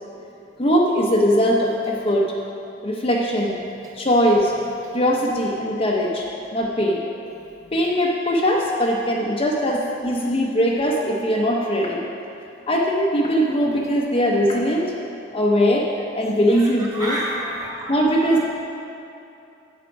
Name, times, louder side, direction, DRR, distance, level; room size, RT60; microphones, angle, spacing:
voice 1, 0.6-2.3 2.8-3.6 4.0-4.5 4.9-7.1 7.7-12.1 12.7-14.9 15.3-15.9 16.1-17.2 17.9-18.5, equal, 30° left, -2 dB, 0.6 m, -20 dB
voice 2, 16.5-17.8 18.2-18.5, right 1 dB, 20° right, -4 dB, 1.6 m, -30 dB
8.2 x 7.6 x 5.2 m, 2.8 s
head